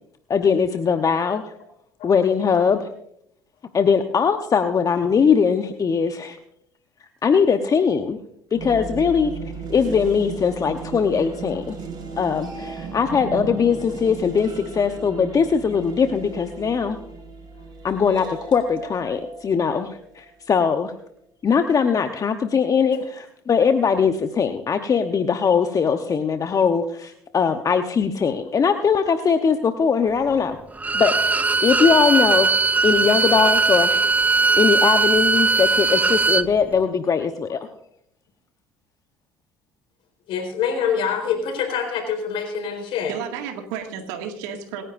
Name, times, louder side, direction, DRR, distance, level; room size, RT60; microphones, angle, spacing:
voice 1, 0.3-1.5 2.0-2.9 3.7-6.4 7.2-8.2 8.5-9.3 9.7-11.7 12.2-17.0 17.8-20.9 21.4-30.6 30.9-32.5 32.8-34.0 34.6-37.6, left 6 dB, 35° left, 7 dB, 1.0 m, -20 dB
sound 1, 8.5-20.3, right 4 dB, 45° right, 5.5 m, -36 dB
Bowed string instrument, 30.8-36.5, right 4 dB, 15° right, 0.5 m, -19 dB
voice 2, 40.3-43.1, left 7 dB, 65° left, 3 dB, 4.2 m, -25 dB
voice 3, 42.8-44.8, right 7 dB, 80° right, 3 dB, 2.1 m, -32 dB
27.0 x 10.0 x 2.6 m, 0.72 s
hypercardioid pair, 65°, 10 cm